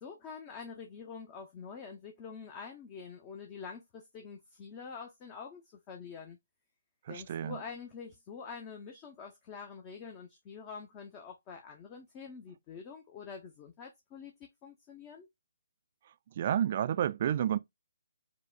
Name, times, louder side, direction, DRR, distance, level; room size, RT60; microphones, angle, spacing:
voice 1, 0.0-6.4 7.1-15.3, left 5 dB, 25° left, 0.6 m, -46 dB
voice 2, 7.1-7.6 16.4-17.6, right 10 dB, 45° right, 0.3 m, -30 dB
4.7 x 2.0 x 2.3 m
figure-of-eight pair, 135°, 0 cm